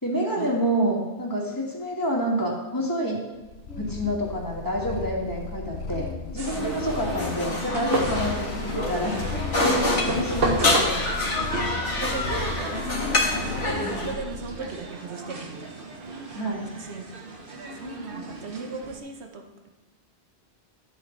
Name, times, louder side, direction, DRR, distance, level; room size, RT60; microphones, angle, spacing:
voice 1, 0.0-3.2 3.8-6.1 6.3-9.2 9.6-11.0 16.3-16.7, equal, 15° left, -3 dB, 2.2 m, -28 dB
Purr, 3.4-14.7, left 5 dB, 65° left, 1.0 m, -36 dB
voice 2, 3.7-4.3 5.9-6.7 7.8-8.0 9.4-9.7 12.0-15.8 16.7-17.0 17.7-19.7, right 3 dB, 70° right, 4 dB, 1.4 m, -37 dB
sound 1, 6.4-14.1, left 2 dB, 85° left, 2.1 m, -27 dB
sound 2, 6.4-19.0, right 3 dB, 50° right, 1.3 m, -35 dB
12.5 x 8.1 x 3.3 m, 1.1 s
omnidirectional pair, 1.2 m